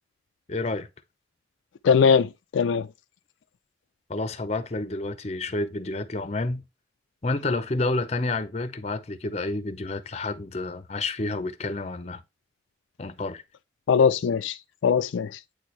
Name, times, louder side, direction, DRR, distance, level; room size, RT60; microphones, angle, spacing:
voice 1, 0.5-0.9 4.1-6.6 7.2-12.2 13.0-13.4, left 2 dB, 35° left, 0.6 m, -29 dB
voice 2, 1.8-2.9 13.9-14.6 14.8-15.4, left 6 dB, 90° left, 0.4 m, -21 dB
8.5 x 4.3 x 3.1 m
head